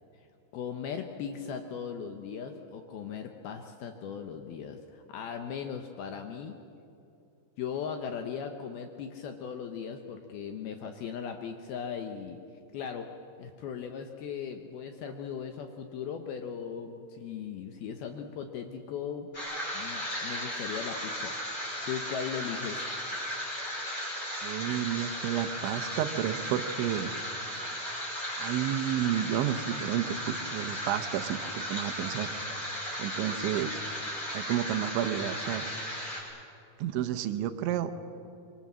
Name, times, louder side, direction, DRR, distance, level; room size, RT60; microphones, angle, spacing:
voice 1, 0.5-6.6 7.6-12.4 12.7-13.1 13.4-19.3 19.7-21.3 21.9-22.9, left 7 dB, 75° left, 6 dB, 2.4 m, -38 dB
sound 1, 19.3-36.2, equal, 20° left, 5.8 m, -36 dB
voice 2, 24.4-27.2 28.4-31.4 31.7-32.3 33.0-33.8 34.3-35.7 36.8-37.9, right 11 dB, 80° right, 9 dB, 3.2 m, -31 dB
26.0 x 23.5 x 7.5 m, 2.6 s
omnidirectional pair, 5.5 m